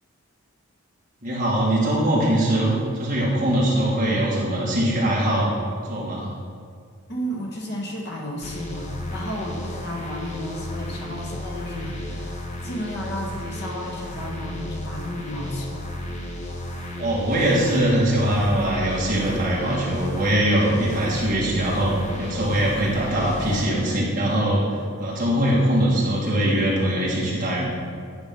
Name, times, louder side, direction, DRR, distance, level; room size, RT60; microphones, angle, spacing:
voice 1, 1.2-5.6 5.9-6.3 17.0-24.6 25.0-27.7, right 1 dB, 35° right, -6 dB, 1.8 m, -22 dB
voice 2, 7.1-15.9, equal, 50° left, -1 dB, 1.3 m, -33 dB
sound 1, 8.4-24.0, left 1 dB, 30° left, 0.7 m, -34 dB
9.8 x 3.6 x 5.4 m, 2.1 s
head